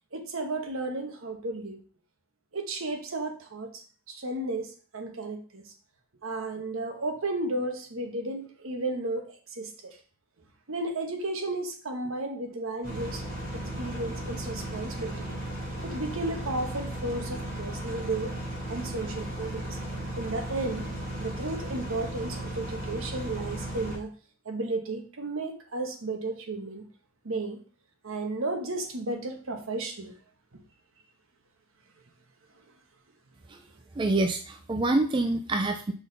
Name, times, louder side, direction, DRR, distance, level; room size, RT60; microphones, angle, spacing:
voice 1, 0.1-1.8 2.5-5.6 6.2-10.0 10.7-13.2 13.5-15.3 15.8-18.3 18.7-19.8 20.2-20.9 21.2-24.1 24.4-26.8 27.2-27.6 28.0-30.1 30.5-30.6, right 2 dB, 70° right, 4 dB, 1.1 m, -33 dB
sound 1, 12.8-24.0, right 1 dB, 40° right, 2.2 m, -35 dB
voice 2, 34.0-35.9, right 2 dB, 20° right, 5 dB, 0.4 m, -26 dB
5.8 x 4.2 x 4.0 m, 0.40 s
head